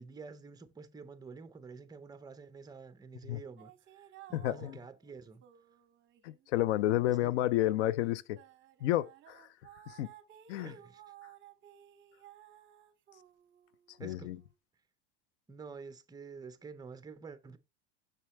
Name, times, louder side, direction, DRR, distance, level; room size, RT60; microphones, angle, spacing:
voice 1, 0.0-5.4 7.1-7.3 10.6-11.0 14.0-14.3 15.5-17.6, right 5 dB, 10° right, 0.6 m, -49 dB
sound 1, 3.6-7.6 8.0-14.6, right 11 dB, 35° right, 1.0 m, -57 dB
voice 2, 4.3-4.8 6.2-8.4 8.8-9.5 9.9-10.1 10.5-10.7 14.0-14.4, left 14 dB, 75° left, 0.6 m, -31 dB
7.2 x 5.8 x 3.2 m
supercardioid pair, 115°, 34 cm